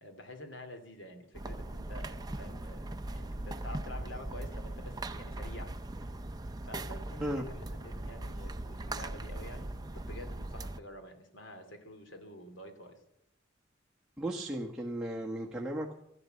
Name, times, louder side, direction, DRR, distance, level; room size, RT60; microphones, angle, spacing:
voice 1, 0.0-5.9 6.6-13.0, left 1 dB, 80° left, 6 dB, 2.6 m, -49 dB
sound 1, 1.3-10.8, right 1 dB, 20° right, 0.6 m, -40 dB
voice 2, 14.2-15.9, right 1 dB, 5° right, -3 dB, 1.3 m, -35 dB
13.5 x 11.5 x 7.9 m, 0.79 s
head